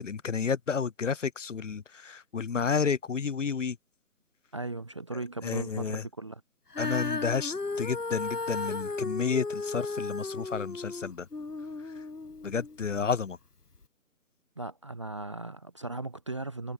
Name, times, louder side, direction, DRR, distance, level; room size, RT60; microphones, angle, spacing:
voice 1, 0.0-3.8 5.4-6.1 6.8-11.3 12.4-13.4, left 6 dB, 55° left, 2.2 m, -31 dB
voice 2, 4.5-6.4 14.6-16.7, right 2 dB, 20° right, 0.7 m, -37 dB
Female singing, 6.7-13.0 13.7-13.8, left 3 dB, 90° left, 3.7 m, -35 dB
figure-of-eight pair, 155°, 46 cm